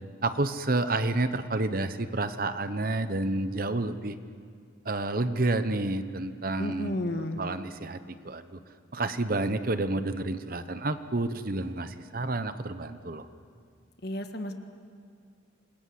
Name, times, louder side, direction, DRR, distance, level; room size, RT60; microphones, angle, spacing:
voice 1, 0.2-4.2 4.8-7.0 7.4-8.6 8.9-13.3, right 2 dB, 45° right, 11 dB, 1.0 m, -29 dB
voice 2, 6.6-7.4 14.0-14.5, left 1 dB, 55° left, 6 dB, 1.7 m, -32 dB
27.0 x 20.5 x 7.9 m, 2.3 s
head